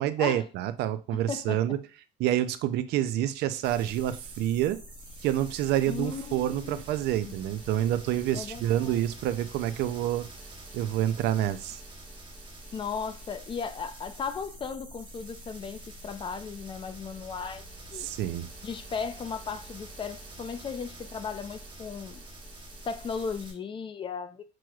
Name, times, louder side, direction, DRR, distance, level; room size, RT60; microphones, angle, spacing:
voice 1, 0.0-1.8 2.2-4.8 5.2-10.2 10.7-11.8 18.0-18.5, right 12 dB, 80° right, 0.4 m, -28 dB
voice 2, 1.3-1.6 5.9-6.8 7.2-7.3 8.3-9.1 12.7-18.1 18.6-22.2 22.8-24.4, left 6 dB, 30° left, 0.4 m, -36 dB
sound 1, 3.6-23.5, right 1 dB, 30° right, 1.2 m, -46 dB
6.1 x 3.0 x 2.3 m
cardioid pair, 125°, 17 cm